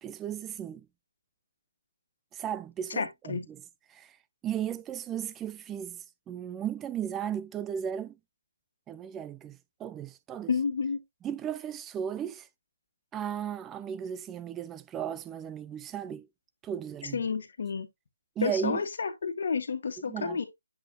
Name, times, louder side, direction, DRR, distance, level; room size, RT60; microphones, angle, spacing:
voice 1, 0.0-0.9 2.3-3.6 3.9-4.2 4.4-8.2 8.9-10.5 11.2-12.5 13.1-16.3 16.6-17.3 18.4-18.8 20.1-20.4, right 9 dB, 10° right, 0.3 m, -35 dB
voice 2, 3.0-3.5 10.5-11.0 17.1-17.9 18.4-20.4, left 5 dB, 60° left, 1.5 m, -30 dB
7.9 x 4.4 x 2.8 m
hypercardioid pair, 155°, 0 cm